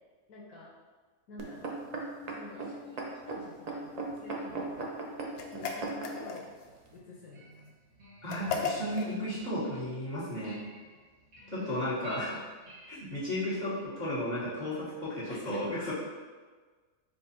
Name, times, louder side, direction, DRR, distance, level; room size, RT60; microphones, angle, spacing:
voice 1, 0.3-0.7 1.3-1.8 2.3-4.9 5.5-6.5 6.9-7.6 11.6-12.4 15.3-15.7, left 2 dB, 80° left, -4 dB, 1.2 m, -48 dB
sound 1, 1.4-6.3 7.0-7.1, right 3 dB, 70° right, 0.3 m, -37 dB
sound 2, 5.4-6.7 8.3-9.1, left 5 dB, 65° left, 0.8 m, -35 dB
sound 3, 7.1-13.9, right 1 dB, 45° right, 1.2 m, -53 dB
voice 2, 8.2-10.6 11.5-12.3 12.9-15.9, left 1 dB, 35° left, -11 dB, 1.5 m, -34 dB
5.1 x 2.2 x 4.3 m, 1.4 s
omnidirectional pair, 1.5 m